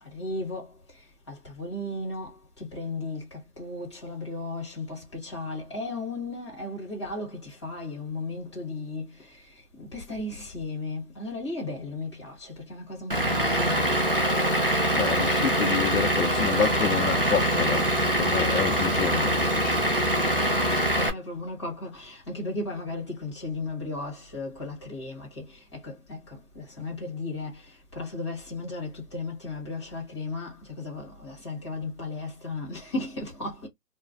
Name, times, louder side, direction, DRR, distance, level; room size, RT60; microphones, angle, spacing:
voice 1, 0.0-14.2 20.0-33.7, left 2 dB, 20° left, 0.9 m, -36 dB
Vehicle / Engine, 13.1-21.1, right 1 dB, 40° right, 0.4 m, -24 dB
voice 2, 14.9-19.9, left 6 dB, 65° left, 0.6 m, -29 dB
2.4 x 2.1 x 3.3 m
hypercardioid pair, 170°, 46 cm